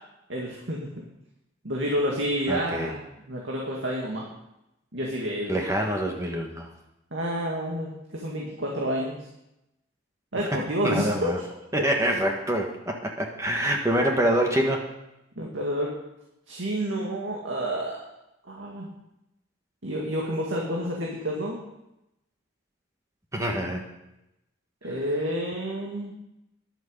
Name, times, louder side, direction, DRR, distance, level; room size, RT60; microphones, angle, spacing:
voice 1, 0.3-0.9 1.6-4.3 4.9-5.5 7.1-9.2 10.3-11.3 15.4-15.9 16.5-18.0 18.5-18.9 19.8-21.6 24.8-26.1, equal, 70° right, -2 dB, 2.1 m, -29 dB
voice 2, 2.5-2.9 5.5-6.7 10.8-11.4 11.7-14.8 23.3-23.8, right 1 dB, 15° right, 2 dB, 1.2 m, -25 dB
11.5 x 9.2 x 6.5 m, 0.88 s
head